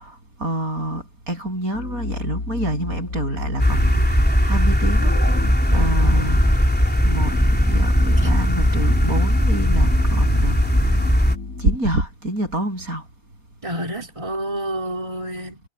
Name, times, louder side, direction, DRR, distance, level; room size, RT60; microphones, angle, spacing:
voice 1, 0.0-5.5 5.7-6.4 7.0-7.4 7.7-10.8 11.6-13.1, right 1 dB, 75° right, 8.6 m, -27 dB
sound 1, 1.7-11.7, left 3 dB, 75° left, 3.4 m, -31 dB
sound 2, 3.6-11.4, equal, 5° left, 3.4 m, -18 dB
voice 2, 5.7-6.1 13.6-15.6, right 1 dB, 20° right, 4.2 m, -29 dB
omnidirectional pair, 1.5 m